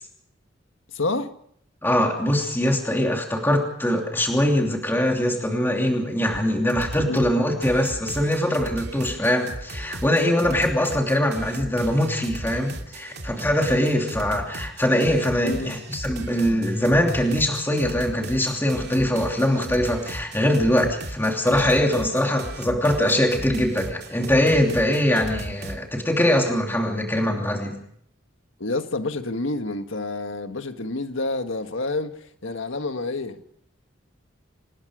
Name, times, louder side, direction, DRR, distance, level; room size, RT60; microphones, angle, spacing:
voice 1, 0.9-1.3 7.0-7.3 15.4-15.8 28.6-33.4, left 2 dB, 85° left, 1.7 m, -28 dB
voice 2, 1.8-27.8, left 1 dB, 10° left, 2.9 m, -22 dB
sound 1, 6.3-6.4 6.7-7.3 7.6-25.8, right 1 dB, 55° right, 2.7 m, -36 dB
27.0 x 19.0 x 5.1 m
head